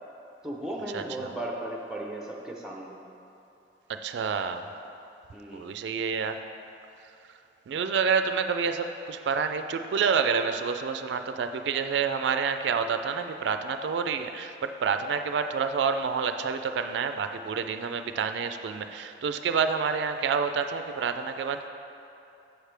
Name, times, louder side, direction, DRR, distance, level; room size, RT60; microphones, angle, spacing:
voice 1, 0.4-3.0 5.3-5.7, right 1 dB, 5° right, -2 dB, 0.7 m, -36 dB
voice 2, 0.9-1.3 3.9-4.7 5.5-6.4 7.7-21.7, right 6 dB, 85° right, 8 dB, 0.3 m, -28 dB
7.9 x 6.4 x 3.3 m, 2.8 s
head